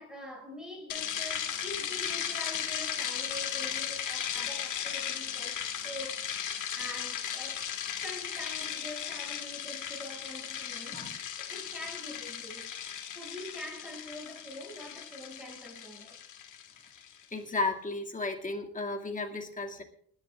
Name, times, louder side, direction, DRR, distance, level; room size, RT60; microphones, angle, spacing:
voice 1, 0.0-7.7 8.0-12.8 13.1-16.2, left 1 dB, ahead, 6.3 m, -45 dB
sound 1, 0.9-17.2, left 9 dB, 75° left, 1.8 m, -36 dB
voice 2, 17.3-19.8, left 3 dB, 25° left, 2.2 m, -34 dB
29.5 x 11.0 x 2.4 m
cardioid pair, 105°, 31 cm